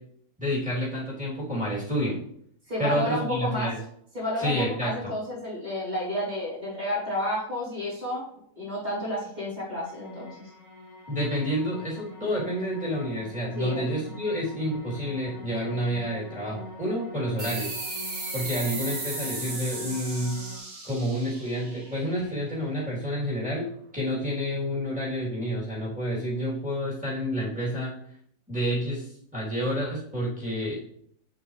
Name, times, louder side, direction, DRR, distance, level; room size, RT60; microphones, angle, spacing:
voice 1, 0.4-2.2 2.8-3.8 4.4-5.1 11.1-17.7 18.3-20.4 20.8-27.9 28.5-30.7, equal, 5° right, -7 dB, 3.3 m, -29 dB
voice 2, 2.7-3.7 4.1-8.2 8.6-10.5 13.5-13.9, left 1 dB, 25° right, -8 dB, 4.0 m, -31 dB
sound 1, 9.8-20.6, left 2 dB, 55° left, 2.2 m, -44 dB
sound 2, 17.4-22.5, right 2 dB, 60° right, 2.2 m, -36 dB
8.5 x 7.3 x 3.3 m, 0.67 s
omnidirectional pair, 1.7 m